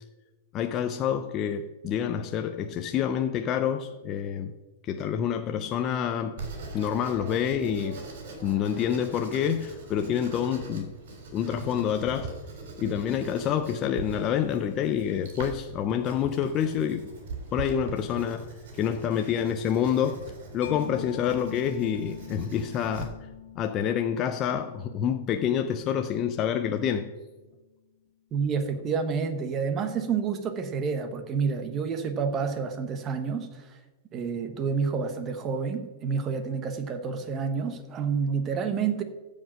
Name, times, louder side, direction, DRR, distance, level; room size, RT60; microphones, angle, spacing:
voice 1, 0.5-4.5 4.8-6.4 6.7-8.0 8.4-10.9 11.3-12.4 12.8-17.1 17.5-18.5 18.7-20.2 20.5-23.2 23.5-27.1, left 8 dB, 25° left, 0.5 m, -27 dB
Writing, 6.4-23.0, right 3 dB, 60° right, 3.5 m, -42 dB
Mallet percussion, 20.6-27.9, left 11 dB, 80° left, 1.2 m, -46 dB
voice 2, 28.3-33.8 34.1-39.0, right 5 dB, 20° right, 1.1 m, -29 dB
15.0 x 5.2 x 6.3 m
supercardioid pair, 160°, 0 cm